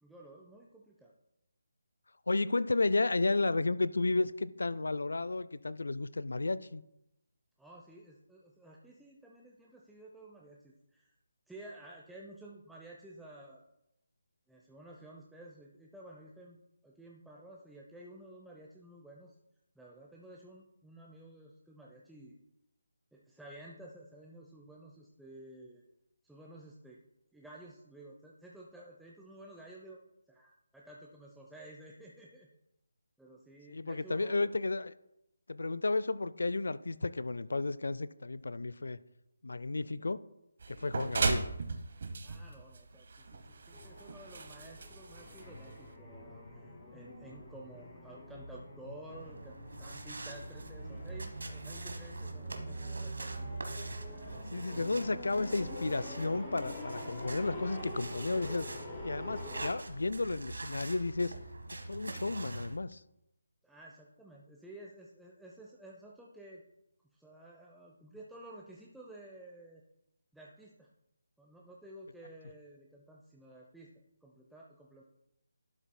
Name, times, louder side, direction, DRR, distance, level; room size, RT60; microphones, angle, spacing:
voice 1, 0.0-1.1 7.6-11.2 11.5-13.7 14.5-16.6 16.8-19.3 19.8-22.4 23.1-25.8 26.2-27.0 27.3-30.0 30.3-32.5 33.2-34.5 42.2-53.6 54.3-55.2 63.6-66.6 67.1-69.8 70.3-70.9 71.4-73.9 74.2-75.0, right 1 dB, ahead, -4 dB, 0.6 m, -53 dB
voice 2, 2.3-6.8 33.7-34.9 35.5-39.0 39.4-40.2 40.7-41.5 54.5-58.7 59.0-61.3 61.8-63.0, left 3 dB, 75° left, 17 dB, 0.4 m, -32 dB
sound 1, 40.6-45.9, right 4 dB, 55° right, 0.9 m, -37 dB
sound 2, 43.7-59.7, left 1 dB, 25° left, 2.4 m, -46 dB
sound 3, 49.1-62.8, right 3 dB, 75° right, 1.1 m, -44 dB
11.5 x 7.0 x 2.2 m, 0.85 s
figure-of-eight pair, 155°, 0 cm